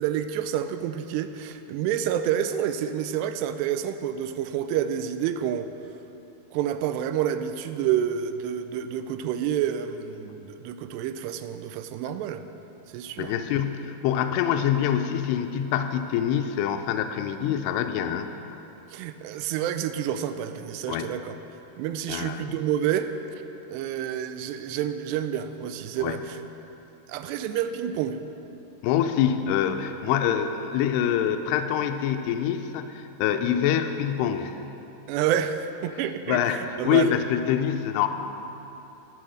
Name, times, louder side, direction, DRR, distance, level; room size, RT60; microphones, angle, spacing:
voice 1, 0.0-5.7 6.5-12.4 12.9-13.3 18.9-21.3 21.8-23.4 23.7-26.4 27.1-28.2 35.1-37.1, right 9 dB, 90° right, 10 dB, 2.7 m, -28 dB
voice 2, 13.2-18.3 20.9-21.1 22.1-22.6 26.0-26.2 28.8-34.6 36.3-38.1, left 9 dB, 85° left, 7 dB, 2.6 m, -25 dB
13.5 x 8.5 x 6.3 m, 2.9 s
omnidirectional pair, 4.8 m